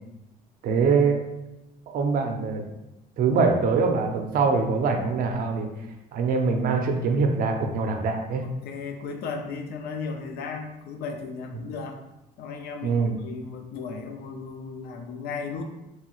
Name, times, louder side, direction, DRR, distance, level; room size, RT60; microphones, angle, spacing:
voice 1, 0.6-1.2 1.9-2.6 3.2-5.7 6.1-8.5 12.8-13.2, right 4 dB, 60° right, 4 dB, 0.5 m, -23 dB
voice 2, 8.4-12.0 12.4-15.6, left 5 dB, 70° left, 5 dB, 0.5 m, -35 dB
3.0 x 2.3 x 2.9 m, 0.94 s
cardioid pair, 110°, 17 cm